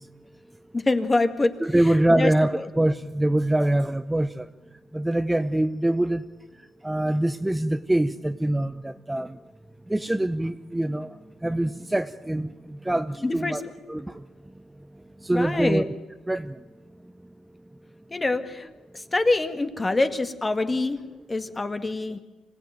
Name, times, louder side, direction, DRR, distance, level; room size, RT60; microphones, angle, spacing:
voice 1, 0.7-1.5 2.1-2.3 13.2-13.6 15.3-15.9 18.1-18.7 18.9-21.0 21.3-22.2, left 2 dB, 20° left, 8 dB, 1.9 m, -25 dB
voice 2, 1.6-4.5 4.9-6.2 6.8-9.4 9.9-11.1 11.4-13.6 13.9-14.2 15.2-15.8 16.3-16.5, right 1 dB, 10° right, 9 dB, 0.7 m, -24 dB
25.5 x 17.0 x 9.4 m, 1.1 s
cardioid pair, 90°, 0 cm